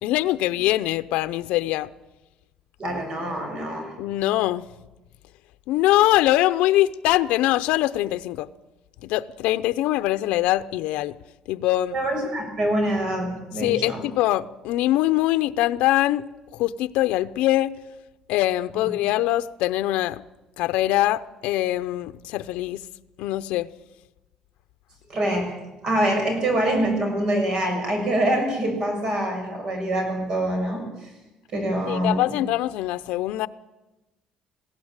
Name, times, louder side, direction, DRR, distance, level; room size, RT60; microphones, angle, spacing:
voice 1, 0.0-1.9 4.0-4.7 5.7-8.5 9.0-11.1 11.5-12.0 13.6-16.2 16.5-17.8 18.3-20.2 20.6-22.8 23.2-23.7 31.9-33.5, left 15 dB, 80° left, 0.7 m, -23 dB
voice 2, 2.8-3.9 11.9-14.0 18.7-18.9 25.1-25.5 25.8-31.1 31.5-32.3, right 1 dB, 35° right, 6.6 m, -25 dB
21.0 x 16.0 x 8.9 m
cardioid pair, 170°, 2 cm